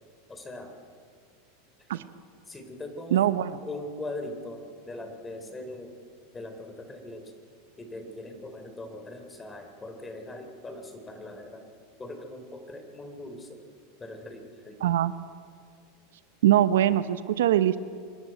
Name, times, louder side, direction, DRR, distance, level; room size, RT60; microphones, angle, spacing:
voice 1, 0.3-0.8 1.9-2.1 2.5-3.3 3.6-5.9 6.3-7.3 7.8-11.6 12.0-13.6 14.0-14.8, left 2 dB, 15° left, 6 dB, 3.3 m, -40 dB
voice 2, 3.1-3.6 14.8-15.1 16.4-17.8, right 12 dB, 85° right, 13 dB, 0.8 m, -22 dB
26.5 x 11.0 x 9.0 m, 2.1 s
supercardioid pair, 120°, 0 cm